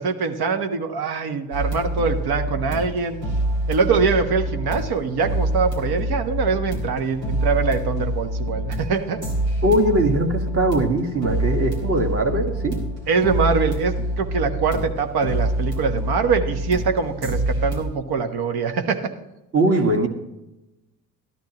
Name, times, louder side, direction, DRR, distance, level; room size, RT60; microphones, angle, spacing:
voice 1, 0.0-3.2 3.7-9.2 13.1-19.0, right 5 dB, 50° right, 7 dB, 1.2 m, -23 dB
sound 1, 1.5-17.8, right 1 dB, 85° right, 1.9 m, -26 dB
voice 2, 9.6-12.8 19.5-20.1, right 1 dB, 30° right, 2 dB, 1.7 m, -20 dB
13.0 x 12.0 x 3.0 m, 0.96 s
figure-of-eight pair, 50°, 50 cm